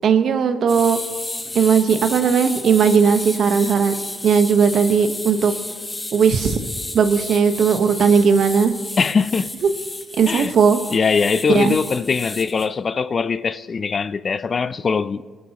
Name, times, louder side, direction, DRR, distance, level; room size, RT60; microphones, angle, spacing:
voice 1, 0.0-1.0 1.5-3.9 4.2-5.5 6.1-6.6 6.9-8.8 9.6-9.7 10.2-10.8 11.5-11.7, right 6 dB, 65° right, 1.0 m, -17 dB
sound 1, 0.7-12.7, left 2 dB, 15° left, 1.0 m, -32 dB
voice 2, 9.0-9.5 10.3-10.5 10.9-15.2, left 5 dB, 40° left, 0.4 m, -21 dB
21.0 x 12.0 x 2.9 m
cardioid pair, 90°, 0 cm